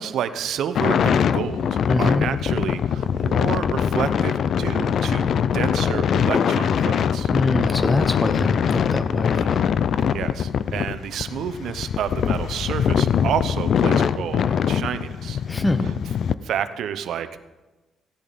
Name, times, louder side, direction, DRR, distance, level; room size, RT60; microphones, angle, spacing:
voice 1, 0.0-7.3 7.6-7.8 9.3-9.6 10.1-15.4 15.8-15.9 16.4-17.4, right 9 dB, 70° right, 11 dB, 0.7 m, -30 dB
sound 1, 0.7-16.3, left 8 dB, 55° left, 0.4 m, -22 dB
voice 2, 1.9-2.3 7.3-9.4 15.5-15.8, left 2 dB, 10° left, 9 dB, 0.8 m, -24 dB
15.5 x 10.5 x 4.1 m, 1.1 s
cardioid pair, 150°, 0 cm